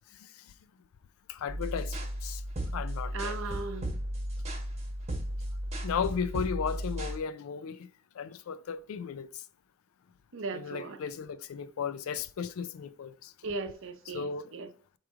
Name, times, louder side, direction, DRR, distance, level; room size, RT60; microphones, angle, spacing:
voice 1, 1.3-2.0 2.2-2.4 2.7-3.4 5.8-7.9 8.2-9.4 10.5-13.3 14.1-14.5, left 6 dB, 85° left, 0.4 m, -35 dB
sound 1, 1.5-7.2, equal, 30° right, 1.1 m, -35 dB
voice 2, 3.1-3.9 10.3-11.0 13.4-14.7, right 3 dB, 65° right, 0.6 m, -37 dB
4.8 x 3.1 x 3.5 m
head